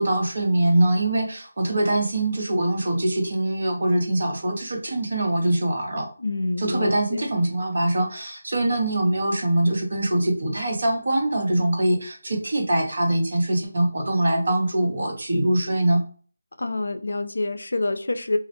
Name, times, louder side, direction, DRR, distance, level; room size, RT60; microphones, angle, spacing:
voice 1, 0.0-6.1 6.6-16.0, right 1 dB, 60° right, 1 dB, 0.9 m, -23 dB
voice 2, 6.2-7.3 16.6-18.4, left 2 dB, 80° left, 9 dB, 0.4 m, -27 dB
2.3 x 2.0 x 2.8 m, 0.41 s
figure-of-eight pair, 165°, 0 cm